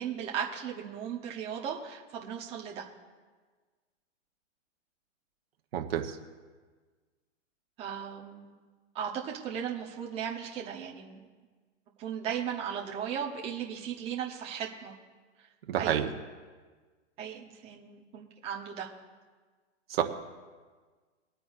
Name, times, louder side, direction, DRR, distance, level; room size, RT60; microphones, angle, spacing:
voice 1, 0.0-2.8 7.8-8.5 8.9-11.2 12.0-14.9 15.8-16.1 17.2-18.9, right 8 dB, 15° right, -2 dB, 1.1 m, -36 dB
voice 2, 5.7-6.2 15.7-16.1 19.9-20.0, right 10 dB, 50° right, 4 dB, 1.4 m, -28 dB
24.0 x 9.1 x 2.6 m, 1.4 s
hypercardioid pair, 160°, 37 cm